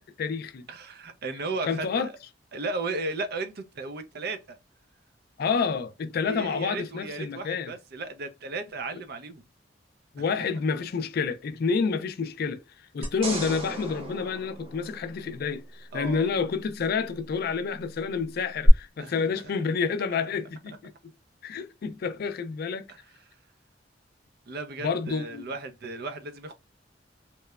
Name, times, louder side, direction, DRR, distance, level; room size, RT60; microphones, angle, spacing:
voice 1, 0.0-0.6 1.6-2.1 5.4-7.7 10.1-12.6 12.9-21.1 21.4-22.9 24.8-25.4, left 5 dB, 55° left, 0.3 m, -29 dB
voice 2, 0.7-2.2 2.5-4.6 6.2-9.4 10.4-10.5 15.9-16.3 19.0-19.5 20.2-20.3 22.9-23.0 24.5-26.5, right 3 dB, 60° right, 0.5 m, -35 dB
sound 1, 13.0-15.5 18.6-18.7, right 1 dB, 30° right, 0.8 m, -34 dB
2.9 x 2.1 x 2.2 m
head